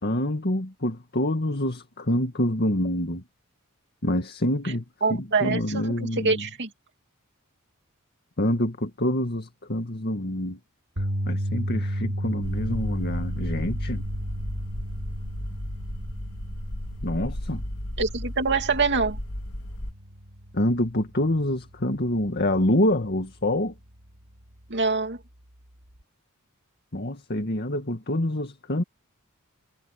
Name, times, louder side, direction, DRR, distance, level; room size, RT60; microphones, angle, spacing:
voice 1, 0.0-3.2 4.0-4.8 5.1-6.5 8.4-10.6 11.3-14.0 17.0-17.6 20.5-23.7 26.9-28.8, left 1 dB, 50° left, 2.1 m, -26 dB
voice 2, 5.0-6.0 6.2-6.7 18.0-19.2 24.7-25.2, right 4 dB, 55° right, 2.7 m, -25 dB
sound 1, 11.0-23.2 23.5-23.8 26.0-26.1, equal, 80° right, 6.4 m, -34 dB
sound 2, 12.4-19.9, left 1 dB, 75° left, 2.5 m, -34 dB
head